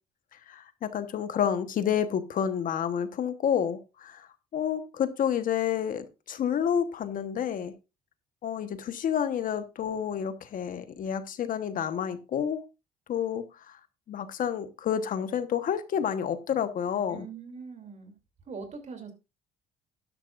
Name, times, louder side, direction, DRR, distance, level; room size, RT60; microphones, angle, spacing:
voice 1, 0.5-4.3 4.5-7.7 8.4-12.6 13.1-13.8 14.1-17.2, left 8 dB, 55° left, 1.2 m, -29 dB
voice 2, 17.1-18.1 18.5-19.1, right 5 dB, 45° right, 3.0 m, -42 dB
12.0 x 11.0 x 2.5 m
cardioid pair, 110°, 17 cm